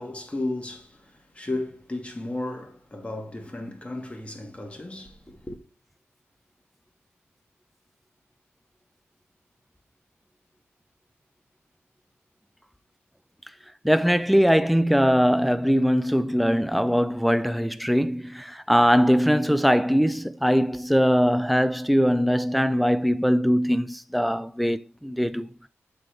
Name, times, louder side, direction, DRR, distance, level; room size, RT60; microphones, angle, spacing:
voice 1, 0.0-5.6, left 2 dB, 25° left, 1.5 m, -34 dB
voice 2, 13.8-25.5, equal, ahead, 0.4 m, -21 dB
7.7 x 3.7 x 3.3 m
cardioid pair, 65°, 5 cm